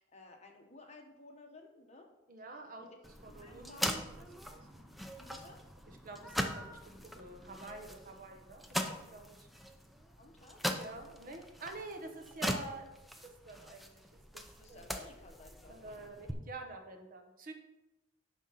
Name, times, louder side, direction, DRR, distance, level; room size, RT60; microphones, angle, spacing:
voice 1, 0.0-2.1 2.8-3.0 3.3-4.0 5.2-5.6 10.2-10.6 14.6-15.9, left 2 dB, 35° left, 2 dB, 1.2 m, -55 dB
voice 2, 2.3-2.9 3.2-4.8 5.9-8.6 9.1-9.5 10.7-13.0 13.5-14.0 14.3-14.4 14.7-14.8 15.7-17.5, right 3 dB, 45° right, 5 dB, 1.0 m, -48 dB
sound 1, 3.0-16.3, equal, ahead, 0.5 m, -41 dB
10.5 x 3.7 x 5.7 m, 0.97 s
head